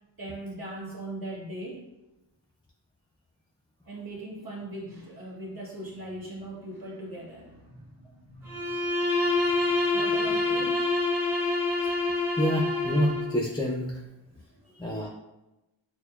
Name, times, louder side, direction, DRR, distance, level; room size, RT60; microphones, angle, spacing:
voice 1, 0.2-1.8 3.9-11.1 14.4-15.1, right 1 dB, 45° right, -4 dB, 1.2 m, -40 dB
Bowed string instrument, 8.4-13.4, left 3 dB, 5° right, 1.0 m, -26 dB
voice 2, 12.4-13.9 14.8-15.1, equal, 10° left, -2 dB, 0.4 m, -27 dB
6.4 x 2.1 x 2.3 m, 0.97 s
wide cardioid pair, 50°, 48 cm